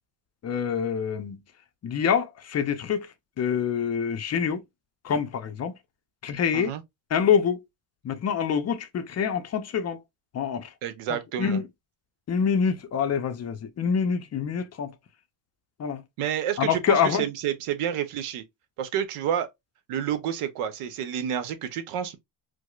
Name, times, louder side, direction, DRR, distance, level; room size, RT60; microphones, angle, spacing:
voice 1, 0.4-1.4 1.8-3.1 3.4-4.6 5.0-5.7 6.2-6.7 7.1-7.6 8.0-10.0 10.3-10.7 11.4-11.7 12.3-14.9 15.8-16.0 16.6-17.3, left 7 dB, 35° left, 0.4 m, -26 dB
voice 2, 10.8-11.6 16.2-18.4 18.8-19.5 19.9-22.2, right 9 dB, 90° right, 0.8 m, -29 dB
4.7 x 2.0 x 2.3 m
cardioid pair, 130°, 50 cm